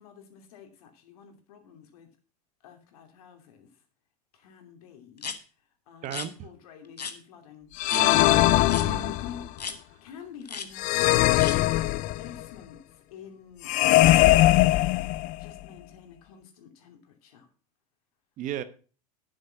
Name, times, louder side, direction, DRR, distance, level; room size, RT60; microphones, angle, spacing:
voice 1, 0.0-2.1 2.6-3.8 4.3-5.3 5.6-8.2 9.0-11.7 12.2-17.5, left 7 dB, 65° left, 2.7 m, -49 dB
sound 1, 5.2-5.4 6.0-6.3 7.0-7.2 7.8-8.0 8.7-8.9 9.6-9.8 10.4-10.7 11.4-11.6, left 5 dB, 90° left, 1.1 m, -35 dB
voice 2, 6.0-6.5 7.9-9.2 18.4-18.6, right 11 dB, 40° right, 1.1 m, -36 dB
sound 2, 7.8-9.5 10.8-12.4 13.6-15.5, left 17 dB, 45° left, 0.5 m, -21 dB
10.0 x 7.9 x 5.6 m
hypercardioid pair, 85°, 20 cm